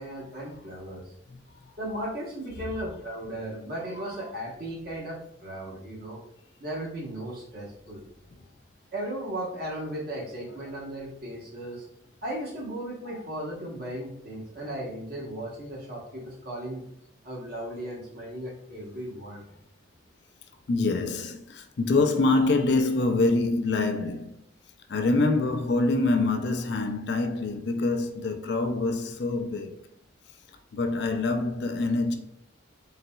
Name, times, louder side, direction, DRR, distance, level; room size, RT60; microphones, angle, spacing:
voice 1, 0.0-1.1 1.8-6.2 6.6-8.0 8.9-11.9 12.2-16.8 17.2-19.4, right 1 dB, 50° right, 1.1 m, -36 dB
voice 2, 1.3-1.7 4.0-4.1 15.9-16.0 20.7-24.4 24.9-29.8 30.7-32.2, left 3 dB, 60° left, 0.4 m, -25 dB
4.0 x 3.9 x 2.3 m
head